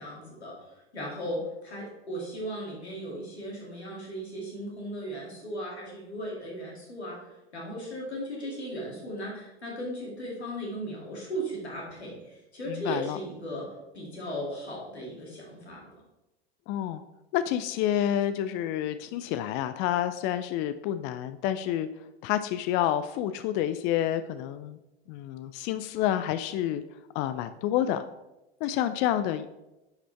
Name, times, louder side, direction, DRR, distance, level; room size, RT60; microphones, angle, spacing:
voice 1, 0.0-13.7 13.9-16.0, equal, 85° left, -3 dB, 2.4 m, -37 dB
voice 2, 12.7-13.2 16.7-17.0 17.3-21.9 22.2-24.8 25.1-26.8 27.1-28.0 28.6-29.5, left 11 dB, 35° left, 12 dB, 0.4 m, -29 dB
10.0 x 5.0 x 3.4 m, 0.98 s
figure-of-eight pair, 80°, 32 cm